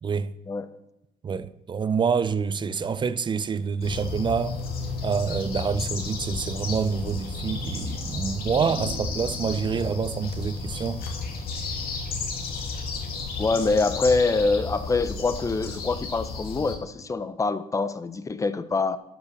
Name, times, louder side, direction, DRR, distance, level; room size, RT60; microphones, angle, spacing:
voice 1, 0.0-0.3 1.2-4.6 5.0-11.0, right 6 dB, 25° right, 0.5 m, -27 dB
sound 1, 3.8-16.7, left 4 dB, 60° left, 2.2 m, -33 dB
sound 2, 7.9-11.6, right 2 dB, 50° right, 1.9 m, -45 dB
voice 2, 13.4-19.0, left 3 dB, 20° left, 0.7 m, -25 dB
12.0 x 5.6 x 6.8 m
cardioid pair, 110°, 17 cm